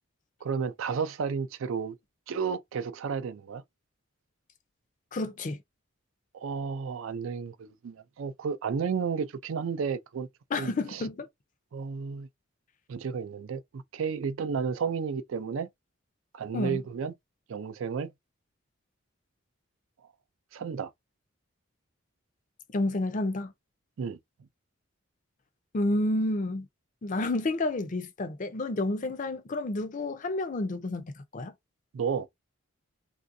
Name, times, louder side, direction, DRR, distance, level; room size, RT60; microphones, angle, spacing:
voice 1, 0.4-2.0 2.3-3.6 6.3-10.3 10.6-11.0 11.7-12.3 12.9-15.7 16.3-17.1 17.5-18.1 20.5-20.9 24.0-24.2 31.9-32.3, right 6 dB, 70° right, 0.4 m, -32 dB
voice 2, 5.1-5.6 10.5-11.3 16.5-16.8 22.7-23.5 25.7-26.7 27.0-31.5, left 2 dB, 40° left, 0.5 m, -30 dB
3.2 x 2.4 x 2.6 m
head